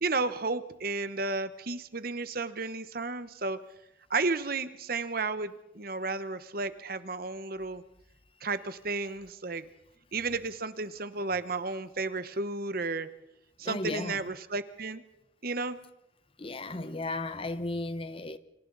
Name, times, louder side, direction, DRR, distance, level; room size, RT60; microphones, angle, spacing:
voice 1, 0.0-3.6 4.1-7.8 8.4-9.6 10.1-13.1 13.6-15.0 15.4-15.8, right 3 dB, 45° right, 1.1 m, -33 dB
voice 2, 13.6-14.2 16.4-18.4, left 2 dB, 25° left, 0.8 m, -35 dB
29.0 x 25.0 x 4.0 m
head